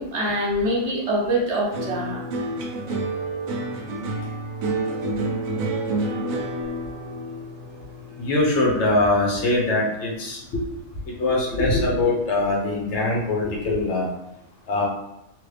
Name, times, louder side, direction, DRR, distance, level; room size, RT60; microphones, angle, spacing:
voice 1, 0.0-2.2, right 1 dB, 60° right, -4 dB, 1.0 m, -24 dB
sound 1, 1.7-10.2 10.5-11.1, right 2 dB, 85° right, 1.0 m, -29 dB
voice 2, 8.2-10.6 11.1-14.1 14.7-14.9, left 2 dB, 65° left, -3 dB, 1.1 m, -22 dB
3.1 x 2.5 x 3.2 m, 0.86 s
omnidirectional pair, 1.4 m